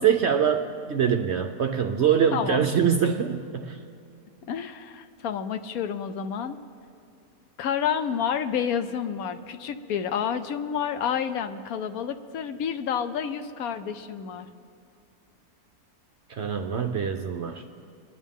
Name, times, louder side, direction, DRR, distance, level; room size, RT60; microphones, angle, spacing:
voice 1, 0.0-3.8 16.3-17.6, right 8 dB, 60° right, 6 dB, 0.7 m, -24 dB
voice 2, 2.3-2.6 4.5-6.6 7.6-14.5, left 8 dB, 70° left, 10 dB, 1.1 m, -29 dB
25.5 x 11.0 x 3.6 m, 2.4 s
omnidirectional pair, 1.7 m